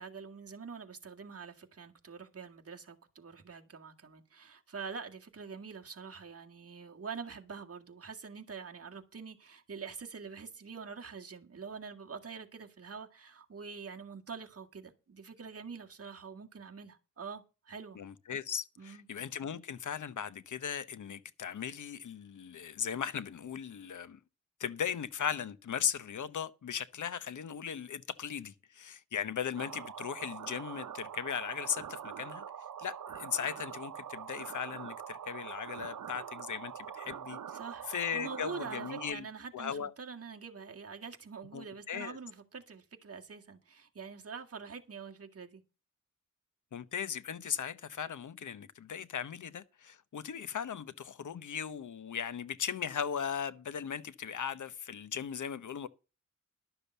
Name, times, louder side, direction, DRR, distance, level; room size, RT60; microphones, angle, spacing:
voice 1, 0.0-18.0 18.8-19.1 37.5-45.6, right 5 dB, 50° right, 1.9 m, -45 dB
voice 2, 17.9-24.2 24.6-32.4 32.8-37.4 37.9-39.3 39.5-39.9 41.5-42.2 46.7-55.9, left 8 dB, 75° left, 0.9 m, -38 dB
sound 1, 29.6-39.1, right 8 dB, 90° right, 0.9 m, -44 dB
12.0 x 6.8 x 6.8 m
wide cardioid pair, 145°, 30 cm